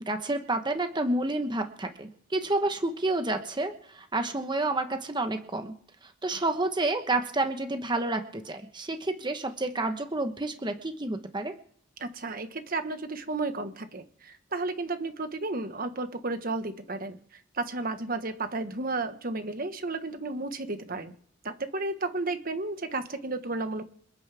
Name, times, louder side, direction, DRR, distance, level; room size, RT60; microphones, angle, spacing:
voice 1, 0.1-5.7 6.2-11.5, right 2 dB, 25° right, 7 dB, 1.1 m, -29 dB
voice 2, 12.0-17.2 17.5-21.1 21.4-23.8, right 3 dB, 45° right, 8 dB, 1.4 m, -33 dB
27.5 x 9.7 x 3.5 m, 0.66 s
head